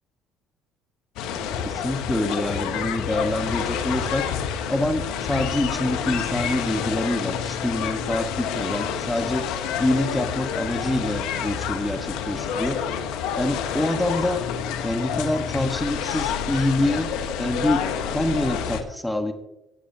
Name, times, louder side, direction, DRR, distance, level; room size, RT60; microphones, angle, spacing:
sound 1, 1.2-18.8, left 8 dB, 75° left, 1.0 m, -28 dB
voice 1, 1.4-4.3 4.7-5.0 5.3-9.4 9.8-12.8 13.4-14.4 14.8-17.1 17.4-17.8 18.1-19.3, left 1 dB, 5° left, 5 dB, 1.3 m, -26 dB
17.5 x 8.4 x 2.8 m, 0.90 s
supercardioid pair, 70°, 0 cm